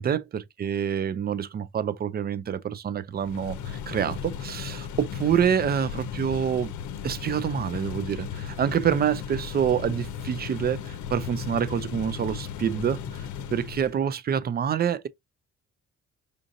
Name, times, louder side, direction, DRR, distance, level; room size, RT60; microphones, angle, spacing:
voice 1, 0.0-6.7 7.0-15.1, right 8 dB, 35° right, 0.4 m, -27 dB
sound 1, 3.2-14.0, left 8 dB, 70° left, 0.7 m, -36 dB
5.1 x 2.5 x 2.6 m
cardioid pair, 90°, 30 cm